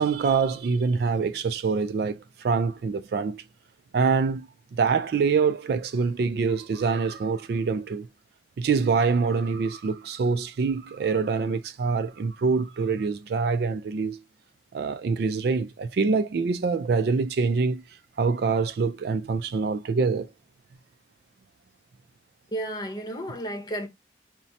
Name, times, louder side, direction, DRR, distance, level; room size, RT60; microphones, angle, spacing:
voice 1, 0.0-3.4 3.9-8.1 8.6-14.2 14.7-17.8 18.2-20.3, right 5 dB, 55° right, 0.3 m, -25 dB
voice 2, 22.5-23.9, right 1 dB, 20° left, 0.8 m, -32 dB
5.9 x 2.1 x 2.7 m
head